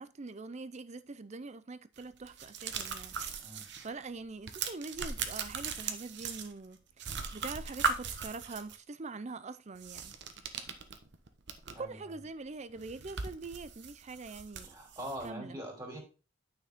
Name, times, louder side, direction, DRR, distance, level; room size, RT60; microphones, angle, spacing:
voice 1, 0.0-3.2 3.8-10.2 11.7-14.7 15.2-15.6, right 3 dB, 35° right, 0.5 m, -44 dB
sound 1, 2.0-3.9 4.2-6.7 7.0-8.8 9.8-11.9 12.2-12.3 12.7-15.3, right 5 dB, 65° right, 1.1 m, -38 dB
voice 2, 14.6-16.0, right 1 dB, 20° right, 3.1 m, -42 dB
9.3 x 5.9 x 3.6 m
head